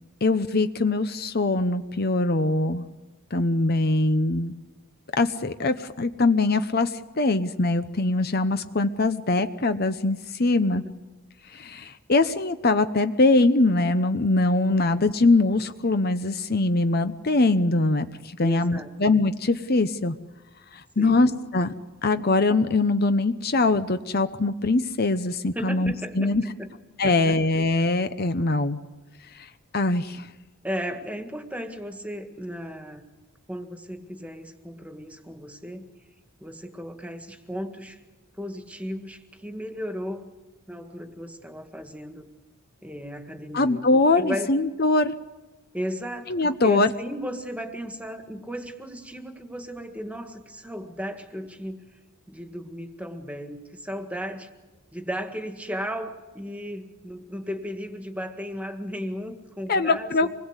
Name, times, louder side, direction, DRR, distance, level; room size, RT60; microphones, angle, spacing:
voice 1, 0.2-2.8 3.3-4.5 5.1-10.8 11.5-20.2 20.7-21.7 22.0-26.4 27.0-28.8 29.3-30.3 43.5-45.1 46.3-46.9 59.7-60.3, left 2 dB, 45° left, 10 dB, 0.9 m, -22 dB
voice 2, 18.4-18.9 21.0-21.3 25.5-26.3 26.6-26.7 27.0-27.4 30.6-33.1 33.5-35.9 36.4-38.0 38.4-40.3 40.7-42.2 42.8-44.5 45.7-51.8 52.3-54.5 54.9-60.3, equal, 5° right, 6 dB, 1.9 m, -35 dB
26.5 x 20.5 x 8.2 m, 1.2 s
head